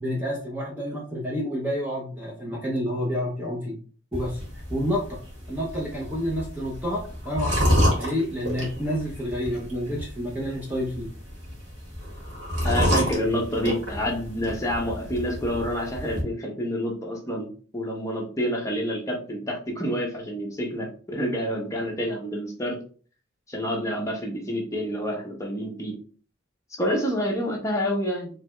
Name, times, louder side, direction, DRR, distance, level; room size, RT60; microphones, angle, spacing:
voice 1, 0.0-3.8 4.1-4.4 4.7-5.2 5.5-11.1 22.0-22.1, equal, 10° right, -3 dB, 0.7 m, -29 dB
sound 1, 4.1-16.2, equal, 75° right, 1.8 m, -29 dB
voice 2, 12.6-17.5 17.7-22.8 23.5-26.0 26.8-28.4, equal, 15° left, -1 dB, 0.9 m, -28 dB
4.7 x 3.2 x 2.3 m, 0.41 s
head